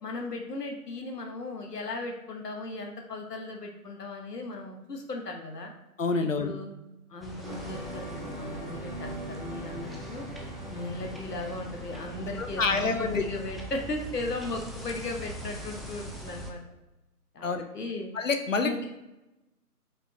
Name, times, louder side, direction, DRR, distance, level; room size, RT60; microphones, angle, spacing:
voice 1, 0.0-5.7 6.2-6.7 7.1-10.3 10.7-16.6 17.3-18.1 18.6-18.8, left 2 dB, 90° left, 3 dB, 1.1 m, -36 dB
voice 2, 6.0-6.5 12.4-13.2 17.4-17.6 18.1-18.9, left 4 dB, 55° left, 7 dB, 0.5 m, -27 dB
sound 1, 7.2-16.5, equal, ahead, 0.3 m, -42 dB
sound 2, 7.4-13.4, right 1 dB, 30° right, 0.6 m, -42 dB
5.0 x 3.3 x 2.9 m, 0.99 s
hypercardioid pair, 175°, 46 cm